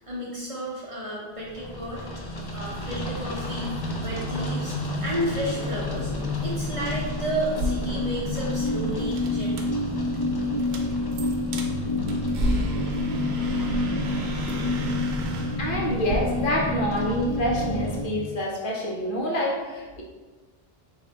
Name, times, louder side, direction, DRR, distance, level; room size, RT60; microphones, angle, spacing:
voice 1, 0.0-2.2 2.5-4.8 5.0-6.1 6.4-9.8, equal, 40° right, -5 dB, 0.7 m, -32 dB
sound 1, 1.4-18.0, left 2 dB, 40° left, 0.3 m, -28 dB
sound 2, 7.5-16.2, right 1 dB, 85° right, 0.8 m, -34 dB
voice 2, 15.6-20.0, equal, 60° left, -2 dB, 0.8 m, -27 dB
3.8 x 2.7 x 3.3 m, 1.3 s
omnidirectional pair, 1.0 m